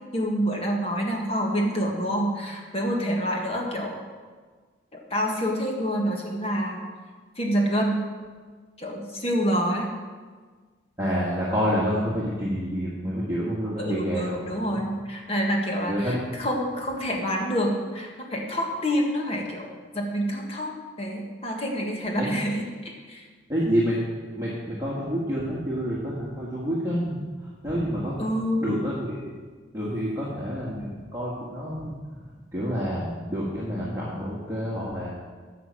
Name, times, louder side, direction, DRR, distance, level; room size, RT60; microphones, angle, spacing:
voice 1, 0.1-4.0 4.9-6.8 7.4-8.0 8.8-9.9 13.8-20.7 21.0-23.3 28.2-28.7, equal, 30° left, 0 dB, 1.5 m, -27 dB
voice 2, 11.0-14.4 14.7-14.8 15.9-16.2 22.2-22.3 23.5-24.0 24.4-28.1 28.6-29.3 29.7-32.0 32.5-35.1, equal, 15° right, -8 dB, 1.6 m, -28 dB
9.5 x 5.8 x 7.4 m, 1.5 s
head